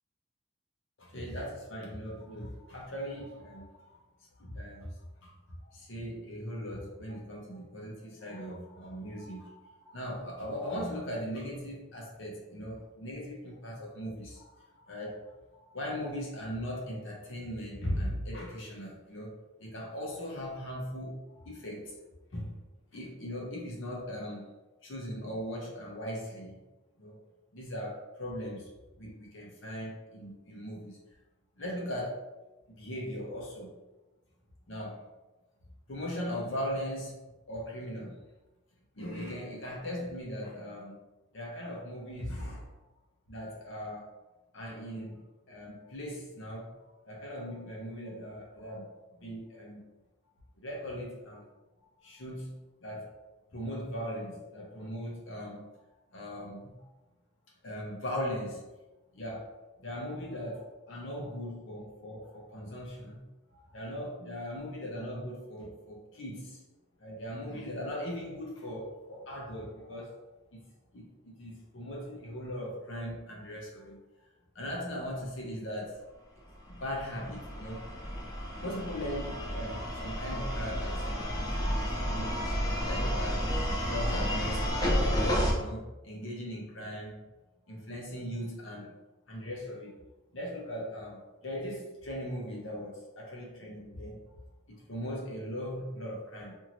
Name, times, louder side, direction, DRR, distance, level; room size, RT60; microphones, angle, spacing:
voice 1, 1.0-4.0 4.4-4.9 5.2-5.3 5.6-15.3 15.6-19.3 19.6-21.9 22.3-22.6 22.9-24.5 24.8-26.6 27.0-27.1 27.5-28.7 29.0-31.0 31.6-32.3 32.8-33.8 34.7-35.0 35.9-37.2 37.5-38.2 38.9-41.0 41.3-42.7 43.3-44.1 44.5-45.2 45.5-46.8 47.0-48.9 49.2-49.9 50.6-51.5 51.8-53.1 53.5-55.6 56.1-56.9 57.6-58.6 59.1-59.5 59.8-63.2 63.5-66.6 67.0-70.2 70.5-70.6 70.9-74.3 74.5-76.0 76.7-77.9 78.6-82.5 82.9-87.2 87.7-88.9 89.3-89.9 90.3-94.4 94.7-96.6, equal, 65° left, -3 dB, 0.8 m, -39 dB
sound 1, 76.7-85.5, equal, 20° left, 0.4 m, -31 dB
2.7 x 2.6 x 2.9 m, 1.1 s
head